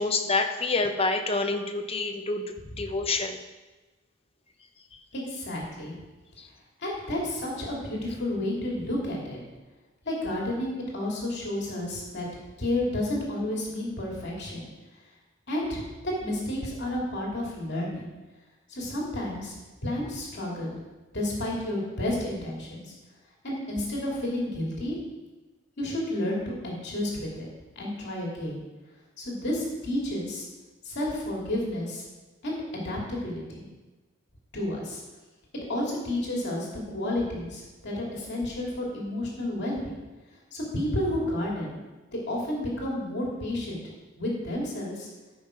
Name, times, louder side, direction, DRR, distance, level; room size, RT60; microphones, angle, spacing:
voice 1, 0.0-2.4 2.8-3.4, left 3 dB, 30° left, 6 dB, 0.8 m, -27 dB
voice 2, 5.1-6.0 6.8-9.4 10.0-12.3 12.6-14.7 15.5-15.8 16.2-18.1 18.7-20.8 21.1-22.9 23.4-25.0 25.8-27.5 27.8-28.6 29.2-30.5 30.8-32.0 32.4-33.6 34.5-35.0 35.5-40.0 40.5-41.8 42.1-43.8 44.2-45.1, left 1 dB, 55° left, -3 dB, 2.5 m, -31 dB
13.5 x 5.6 x 5.0 m, 1.2 s
head